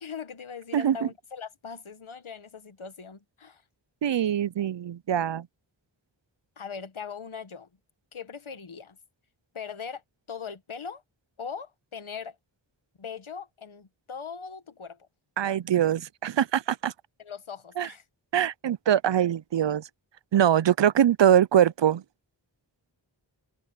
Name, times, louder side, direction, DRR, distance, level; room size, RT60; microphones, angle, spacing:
voice 1, 0.0-3.6 6.6-7.7 8.1-9.0 9.5-10.0 10.3-11.0 11.4-12.4 13.0-15.0 17.2-18.0, left 6 dB, 90° left, 1.3 m, -40 dB
voice 2, 4.0-5.5 15.4-16.9 17.8-17.9 18.3-19.9 20.3-22.0, right 10 dB, 65° right, 0.5 m, -23 dB
wide cardioid pair, 40°, 47 cm